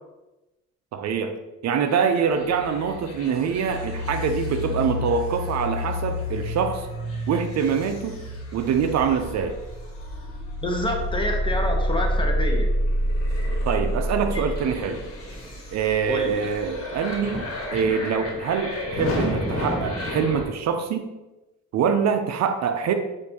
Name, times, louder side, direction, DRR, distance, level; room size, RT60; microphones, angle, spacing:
voice 1, 0.9-1.3 1.6-6.9 7.3-8.2 8.5-9.5 13.6-15.0 15.7-17.4 17.7-21.1 21.7-22.9, right 6 dB, 60° right, 7 dB, 0.5 m, -24 dB
sound 1, 2.1-20.4, equal, 45° left, 1.4 m, -29 dB
voice 2, 10.6-12.7 14.3-14.5 16.1-16.5, left 1 dB, 15° left, 1 dB, 0.8 m, -28 dB
6.5 x 2.6 x 2.8 m, 1.0 s
cardioid pair, 90°, 30 cm